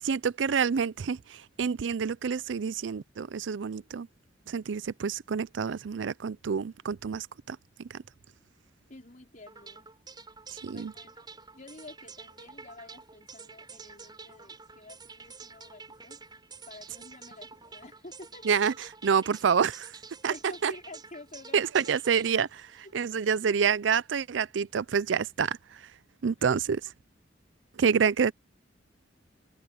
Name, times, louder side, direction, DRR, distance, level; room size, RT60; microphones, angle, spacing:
voice 1, 0.0-4.1 4.5-7.9 10.6-10.9 18.5-18.7 19.0-19.9 20.2-20.3 20.6-20.7 21.5-25.8 26.2-26.8 27.8-28.3, right 6 dB, 75° right, 0.5 m, -28 dB
voice 2, 8.9-9.9 10.7-11.3 11.5-16.2 16.6-18.5 19.1-19.3 20.3-21.6 22.8-22.9 26.5-26.6, left 2 dB, 45° left, 4.6 m, -49 dB
sound 1, 9.5-23.5, right 4 dB, 25° right, 6.3 m, -49 dB
head